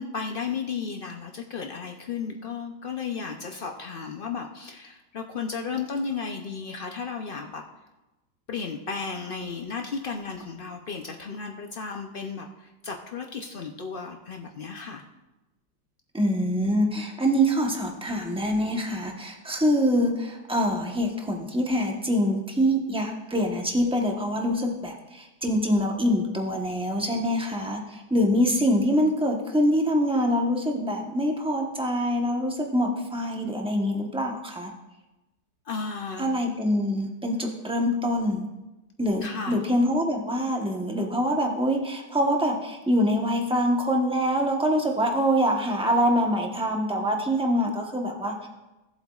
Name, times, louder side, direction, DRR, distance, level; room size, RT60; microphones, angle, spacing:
voice 1, 0.0-7.6 8.5-15.0 35.7-36.3 39.2-39.6, left 5 dB, 80° left, 3 dB, 0.4 m, -34 dB
voice 2, 16.1-34.7 36.2-38.4 39.0-48.5, equal, 5° right, 1 dB, 0.7 m, -25 dB
17.0 x 7.8 x 2.4 m, 1.0 s
omnidirectional pair, 1.8 m